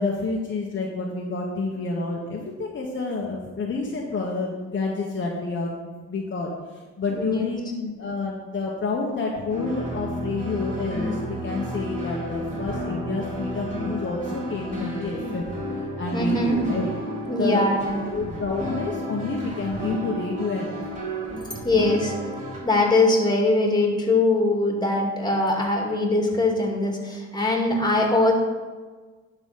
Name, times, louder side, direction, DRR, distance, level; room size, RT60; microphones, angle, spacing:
voice 1, 0.0-15.5 16.0-16.9 17.3-17.7 18.1-20.9, left 3 dB, 40° left, -2 dB, 1.2 m, -29 dB
voice 2, 7.1-7.5 16.1-16.6 17.3-18.0 21.6-22.2 22.6-28.3, left 2 dB, 15° left, 1 dB, 2.1 m, -22 dB
sound 1, 9.5-22.6, equal, 25° right, 3.0 m, -32 dB
11.0 x 4.1 x 5.7 m, 1.4 s
cardioid pair, 90°, 30 cm